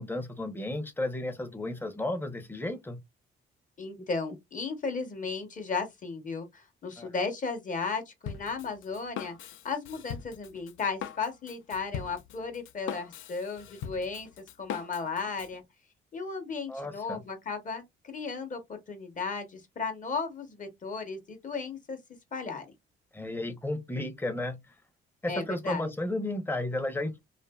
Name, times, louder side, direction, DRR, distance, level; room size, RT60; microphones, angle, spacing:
voice 1, 0.0-3.0 7.0-7.1 16.7-17.2 23.1-24.6 25.2-27.2, left 1 dB, 10° left, 0.6 m, -33 dB
voice 2, 3.8-9.4 9.6-14.3 14.6-15.6 16.1-22.0 22.3-22.7 25.3-25.9, left 4 dB, 40° left, 0.9 m, -35 dB
Drum kit, 8.3-15.6, left 8 dB, 80° left, 0.4 m, -41 dB
2.6 x 2.5 x 2.2 m
cardioid pair, 90°, 20 cm